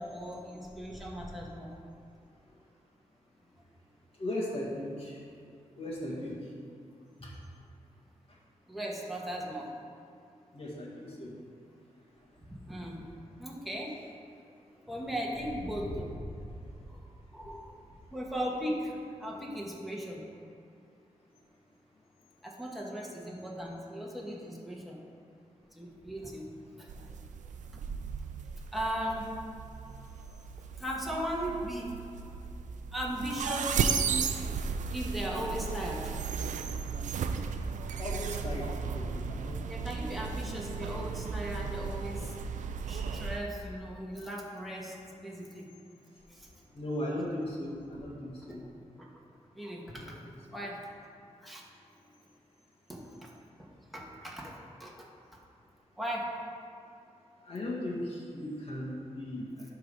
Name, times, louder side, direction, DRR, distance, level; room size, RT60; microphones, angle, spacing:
voice 1, 0.0-1.7 8.7-9.7 12.4-13.1 13.4-14.0 14.9-16.1 16.6-17.0 17.3-17.8 18.1-20.3 22.4-25.0 25.7-26.5 26.8-27.2 27.6-27.9 28.7-29.3 30.8-32.0 32.9-36.5 39.6-42.4 42.9-45.7 46.3-46.5 48.5-48.6 49.0-49.1 49.5-50.2 50.5-50.9 51.4-51.6 52.9-53.3 53.6-55.1 56.0-56.4, equal, ahead, -3 dB, 1.4 m, -38 dB
voice 2, 4.2-5.2 5.8-6.5 7.2-7.3 8.3-8.4 10.5-11.3 14.6-14.7 16.4-16.9 38.0-39.8 46.7-48.6 50.0-50.3 57.4-59.7, left 1 dB, 50° left, -6 dB, 1.9 m, -37 dB
sound 1, 26.9-43.4, right 6 dB, 90° right, 0.4 m, -35 dB
11.5 x 3.9 x 4.9 m, 2.5 s
wide cardioid pair, 90°, 13 cm